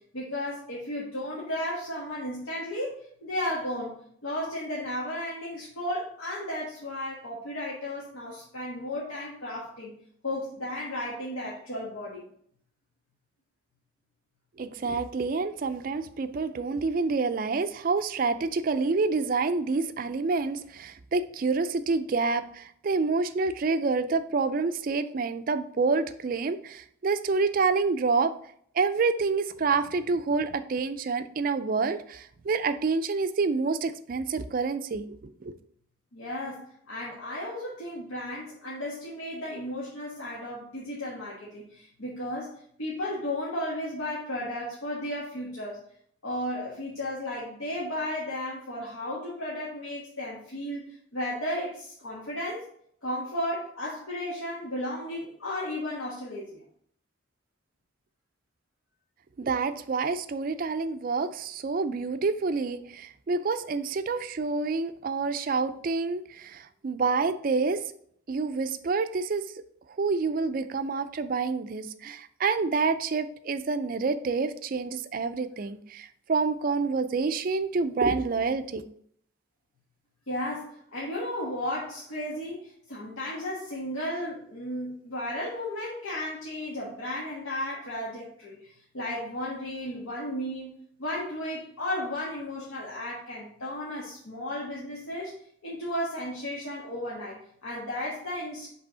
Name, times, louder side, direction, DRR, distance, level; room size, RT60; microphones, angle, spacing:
voice 1, 0.1-4.0 4.2-9.9 10.2-12.2 36.1-42.5 42.8-45.8 46.2-50.8 51.1-52.7 53.0-56.6 80.3-90.7 91.0-95.3 95.6-98.7, left 1 dB, 90° left, -6 dB, 1.4 m, -34 dB
voice 2, 14.6-28.3 28.8-35.5 59.4-67.8 68.3-69.5 70.0-78.8, right 4 dB, 45° right, 11 dB, 0.3 m, -28 dB
5.3 x 3.4 x 5.4 m, 0.64 s
head